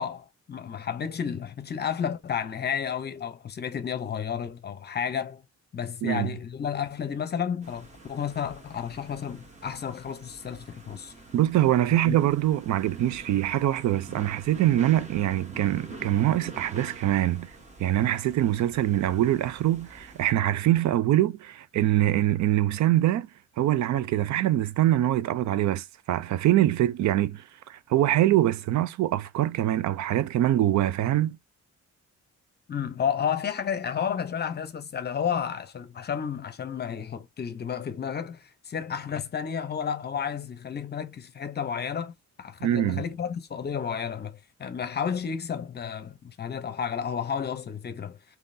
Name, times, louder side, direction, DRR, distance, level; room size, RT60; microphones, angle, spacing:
voice 1, 0.0-5.4 5.7-11.1 12.0-12.2 32.7-48.2, left 7 dB, 35° left, 0.7 m, -32 dB
sound 1, 7.6-20.3, right 3 dB, 25° right, 1.0 m, -46 dB
voice 2, 11.3-17.5 17.8-23.3 23.6-31.4 42.6-43.0, right 13 dB, 75° right, 0.5 m, -24 dB
3.8 x 2.8 x 2.6 m
cardioid pair, 160°, 29 cm